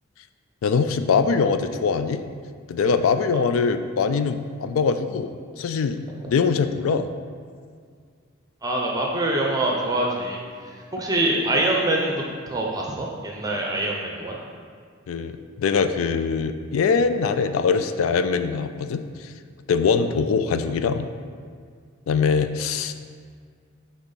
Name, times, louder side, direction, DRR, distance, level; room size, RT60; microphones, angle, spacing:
voice 1, 0.6-2.2 2.7-6.0 6.3-7.1 15.1-19.3 19.7-21.1 22.1-22.9, left 5 dB, 85° left, 9 dB, 0.3 m, -22 dB
voice 2, 8.6-10.4 10.9-14.4, right 1 dB, 20° right, -1 dB, 0.7 m, -24 dB
9.4 x 3.5 x 4.0 m, 2.1 s
head